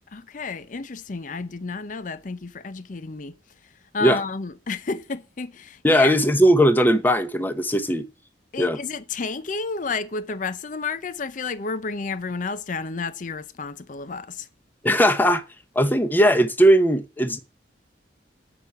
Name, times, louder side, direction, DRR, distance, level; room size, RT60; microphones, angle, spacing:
voice 1, 0.1-3.3 3.9-6.1 8.5-14.5, left 4 dB, 45° left, 0.6 m, -31 dB
voice 2, 5.8-8.1 8.6-8.8 14.8-15.4 15.7-17.4, equal, 10° left, 0.9 m, -18 dB
8.6 x 6.0 x 6.7 m
head